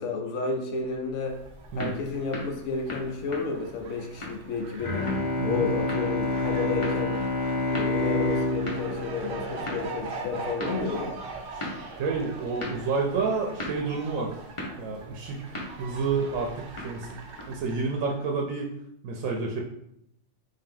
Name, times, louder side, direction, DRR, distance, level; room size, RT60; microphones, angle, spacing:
voice 1, 0.0-1.4 1.7-5.1 5.4-7.3 7.6-11.1, left 4 dB, 80° left, 4 dB, 1.0 m, -31 dB
Fowl, 0.9-18.3, right 3 dB, 55° right, 0.7 m, -43 dB
sound 1, 1.3-17.7, left 1 dB, 30° left, 0.8 m, -41 dB
Bowed string instrument, 4.8-10.4, left 2 dB, 55° left, 1.1 m, -28 dB
voice 2, 11.5-14.3 14.8-18.7 19.0-19.6, right 4 dB, 80° right, 0 dB, 1.0 m, -30 dB
3.6 x 2.7 x 3.7 m, 0.76 s
omnidirectional pair, 1.4 m